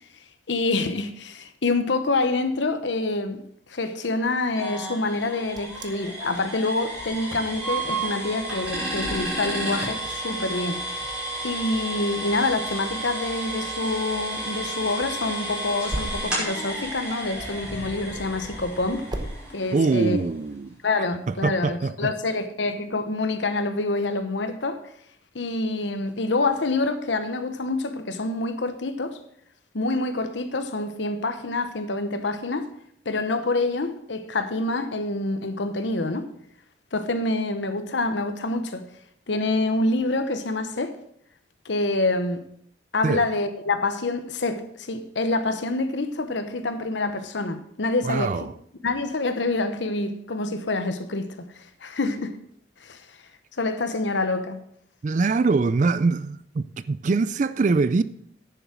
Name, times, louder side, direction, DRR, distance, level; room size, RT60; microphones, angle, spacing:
voice 1, 0.5-3.4 3.7-10.8 11.4-19.1 19.5-20.2 20.8-24.8 25.3-29.2 29.7-32.7 33.0-36.3 36.9-38.9 39.3-41.0 41.6-42.4 42.9-48.4 48.8-52.3 52.8-53.1 53.6-54.6, left 2 dB, 90° left, 1.0 m, -26 dB
sound 1, 4.6-20.2, right 1 dB, 5° right, 5.6 m, -32 dB
Wind, 5.2-19.3, right 1 dB, 25° right, 0.9 m, -40 dB
voice 2, 19.7-20.7 21.3-22.1 43.0-43.2 48.0-48.5 55.0-58.0, right 4 dB, 45° right, 0.4 m, -23 dB
10.5 x 7.1 x 6.1 m
head